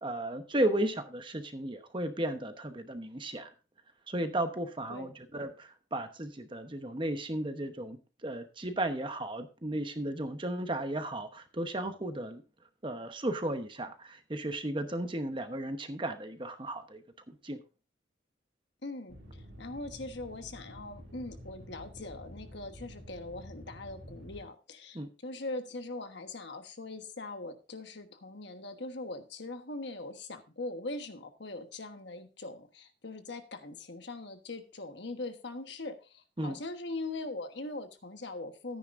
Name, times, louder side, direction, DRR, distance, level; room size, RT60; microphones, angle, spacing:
voice 1, 0.0-3.5 4.1-12.4 12.8-17.0 17.3-17.6 24.9-25.1 36.4-36.6, right 1 dB, 25° right, 8 dB, 1.0 m, -34 dB
voice 2, 18.8-38.8, left 2 dB, 60° left, 7 dB, 1.3 m, -41 dB
sound 1, 19.1-24.4, equal, 65° right, 2.7 m, -49 dB
14.0 x 9.5 x 2.6 m, 0.32 s
head